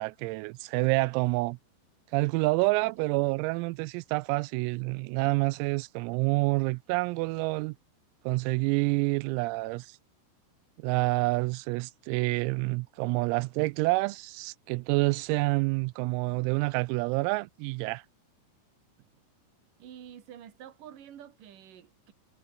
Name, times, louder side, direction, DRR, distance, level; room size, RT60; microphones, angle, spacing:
voice 1, 0.0-1.6 2.1-7.8 8.3-10.0 10.8-18.0, right 24 dB, 85° right, 3.3 m, -28 dB
voice 2, 19.8-22.1, right 10 dB, 50° right, 3.5 m, -48 dB
omnidirectional pair, 6.0 m